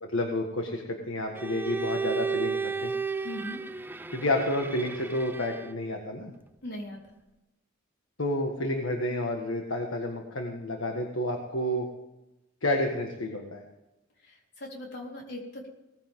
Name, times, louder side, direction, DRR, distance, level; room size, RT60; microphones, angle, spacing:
voice 1, 0.0-2.9 4.1-6.3 8.2-11.9 12.6-13.6, left 1 dB, 70° left, 2 dB, 1.6 m, -30 dB
Bowed string instrument, 1.3-5.9, right 5 dB, 10° right, 0.5 m, -33 dB
voice 2, 3.2-3.6 6.6-7.0 14.2-15.7, left 1 dB, 55° left, -1 dB, 4.0 m, -39 dB
18.5 x 14.5 x 3.7 m, 0.96 s
head